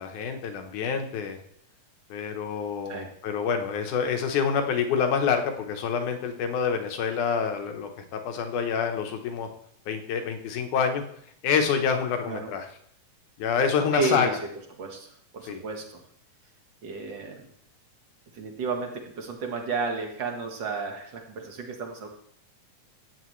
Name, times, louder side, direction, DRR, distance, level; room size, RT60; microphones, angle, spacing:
voice 1, 0.0-1.4 2.1-9.5 9.9-11.0 11.4-12.7 13.4-14.3 15.5-15.6, left 6 dB, 85° left, 5 dB, 2.6 m, -27 dB
voice 2, 13.9-14.4 14.8-16.0 16.8-17.5 18.3-22.1, right 4 dB, 50° right, 3 dB, 1.7 m, -32 dB
14.5 x 9.1 x 3.2 m, 0.67 s
omnidirectional pair, 3.4 m